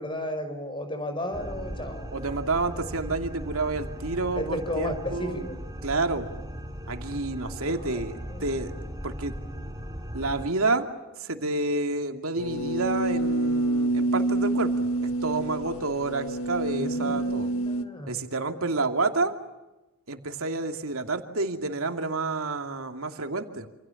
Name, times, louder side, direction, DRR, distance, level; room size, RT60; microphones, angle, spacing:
voice 1, 0.0-2.1 4.4-5.6 7.9-8.0 8.3-8.4 16.7-18.3, left 1 dB, 25° left, 8 dB, 5.7 m, -33 dB
sound 1, 1.3-10.5, equal, 15° right, 2.9 m, -38 dB
voice 2, 2.1-5.4 5.8-6.4 6.9-8.7 9.0-9.3 10.1-10.9 11.2-17.5 18.1-19.3 20.1-23.7, right 3 dB, 85° right, 6 dB, 2.7 m, -29 dB
sound 2, 12.4-17.8, right 2 dB, 85° left, 1.8 m, -27 dB
28.0 x 28.0 x 7.2 m, 1.0 s
head